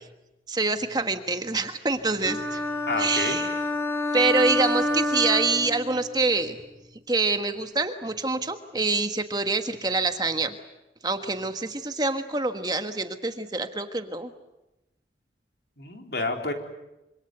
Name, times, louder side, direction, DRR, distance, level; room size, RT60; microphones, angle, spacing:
voice 1, 0.5-2.6 3.0-3.6 4.1-6.6 7.1-10.5 11.0-14.3, right 3 dB, 25° right, 7 dB, 1.4 m, -26 dB
sound 1, 2.3-6.1, left 1 dB, 15° left, 4.9 m, -28 dB
voice 2, 2.9-3.4 15.8-16.5, left 2 dB, 65° left, 3 dB, 4.2 m, -29 dB
26.0 x 26.0 x 8.1 m, 0.96 s
head